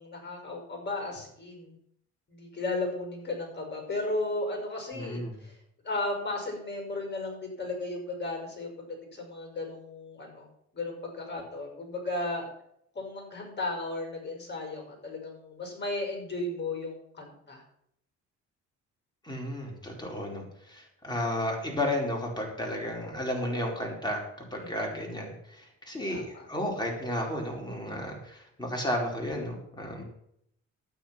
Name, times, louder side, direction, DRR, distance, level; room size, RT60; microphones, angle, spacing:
voice 1, 0.0-1.8 2.3-5.6 5.8-8.7 9.1-10.5 10.7-12.5 12.9-17.6 24.6-25.0 26.1-26.2, left 2 dB, 35° left, 3 dB, 5.5 m, -35 dB
voice 2, 4.9-5.4 19.2-24.2 24.5-30.0, left 1 dB, 15° left, 0 dB, 4.6 m, -33 dB
12.0 x 9.4 x 5.9 m, 0.72 s
cardioid pair, 90°, 30 cm